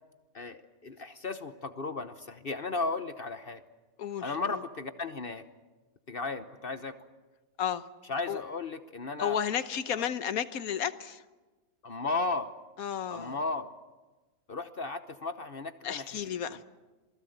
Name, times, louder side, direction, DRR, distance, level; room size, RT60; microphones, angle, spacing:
voice 1, 0.3-3.6 4.2-5.4 6.1-7.0 8.1-9.4 10.0-10.1 11.8-12.5 13.1-13.7 14.5-16.2 16.5-16.6, left 3 dB, 45° left, 10 dB, 1.0 m, -35 dB
voice 2, 4.0-4.6 7.6-7.9 8.3-8.4 9.2-11.2 12.8-13.3 15.8-16.6, left 9 dB, 75° left, 13 dB, 1.4 m, -32 dB
27.5 x 20.0 x 7.9 m, 1.2 s
omnidirectional pair, 1.5 m